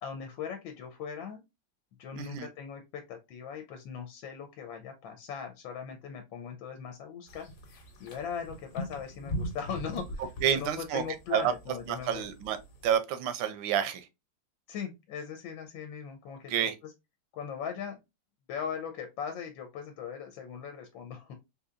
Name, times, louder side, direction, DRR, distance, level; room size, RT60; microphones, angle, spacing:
voice 1, 0.0-1.4 2.0-12.2 14.7-16.9 17.3-18.0 18.5-21.3, left 7 dB, 90° left, 1.4 m, -39 dB
voice 2, 2.1-2.5 10.4-11.0 11.3-11.5 11.9-12.6 12.8-14.1 16.5-16.7, right 9 dB, 85° right, 1.3 m, -29 dB
sound 1, 7.3-12.9, equal, 55° left, 1.2 m, -41 dB
3.7 x 2.8 x 2.4 m
omnidirectional pair, 2.1 m